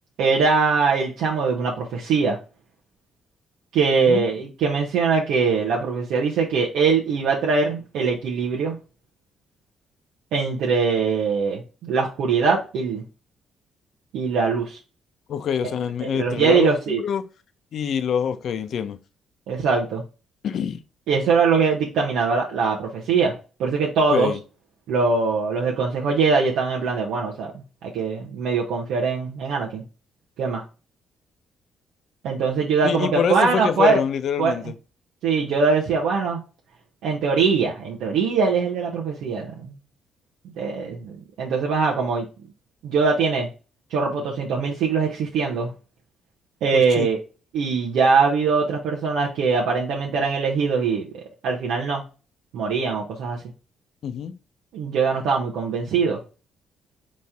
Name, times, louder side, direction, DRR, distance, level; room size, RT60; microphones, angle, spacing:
voice 1, 0.2-2.4 3.7-8.7 10.3-13.0 14.1-14.8 16.0-17.0 19.5-20.0 21.1-23.3 23.6-24.3 24.9-29.8 30.4-30.6 32.2-34.0 34.4-34.5 35.2-36.4 37.0-39.7 40.6-41.1 41.4-42.3 42.8-43.5 43.9-45.7 46.6-47.2 47.5-52.0 52.5-53.4 54.7-56.2, right 5 dB, 85° right, 0.9 m, -22 dB
voice 2, 3.9-4.3 15.3-17.2 17.7-19.0 20.4-20.8 24.1-24.4 32.8-34.8 46.7-47.1 54.0-54.3, left 7 dB, 65° left, 0.6 m, -25 dB
4.2 x 3.2 x 3.5 m
cardioid pair, 90°, 0 cm